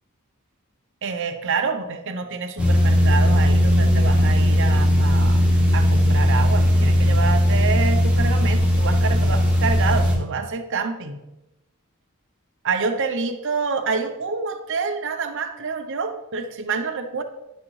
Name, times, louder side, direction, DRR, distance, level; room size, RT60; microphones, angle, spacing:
voice 1, 1.0-5.5 5.7-11.2 12.6-17.2, right 5 dB, 60° right, 7 dB, 0.8 m, -27 dB
sound 1, 2.6-10.2, equal, 5° right, 1.2 m, -18 dB
10.5 x 6.1 x 3.2 m, 0.95 s
head